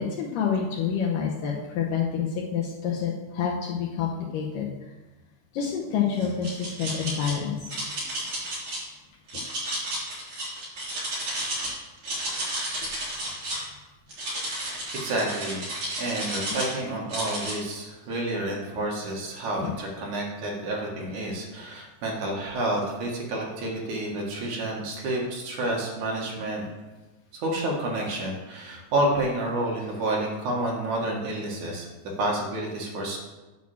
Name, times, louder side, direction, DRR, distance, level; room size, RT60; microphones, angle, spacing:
voice 1, 0.0-4.7 5.5-7.6 18.8-18.9 19.6-19.7, left 7 dB, 85° left, -3 dB, 1.9 m, -28 dB
sound 1, 6.2-7.3 7.7-8.8 9.3-11.7 12.0-13.7 14.1-16.7 17.1-17.5, right 1 dB, 40° right, 4.1 m, -32 dB
voice 2, 14.9-15.6 16.0-26.7 27.3-31.9 32.2-33.2, right 1 dB, 55° right, -2 dB, 2.5 m, -29 dB
9.9 x 4.3 x 7.1 m, 1.2 s
omnidirectional pair, 5.1 m